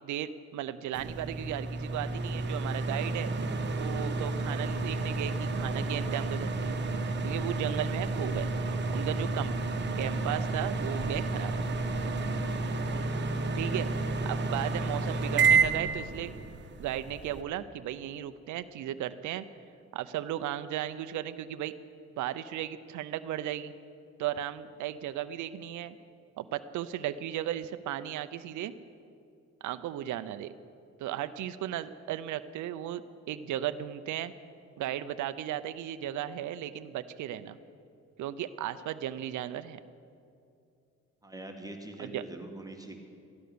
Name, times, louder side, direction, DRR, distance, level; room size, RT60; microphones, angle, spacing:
voice 1, 0.0-3.3 3.7-6.8 7.2-8.5 8.9-9.6 10.0-11.5 13.6-13.9 14.2-16.3 16.8-19.4 19.9-21.7 22.2-23.7 24.2-25.9 26.4-28.7 29.6-30.5 31.0-33.0 33.3-34.3 34.8-37.6 38.2-39.8 42.0-42.2, right 12 dB, 75° right, 11 dB, 0.6 m, -35 dB
sound 1, 0.9-17.4, right 3 dB, 35° right, 1.2 m, -30 dB
voice 2, 12.2-12.6 41.2-43.0, right 1 dB, 10° right, 2 dB, 1.4 m, -44 dB
14.5 x 11.0 x 6.8 m, 2.5 s
cardioid pair, 90°, 30 cm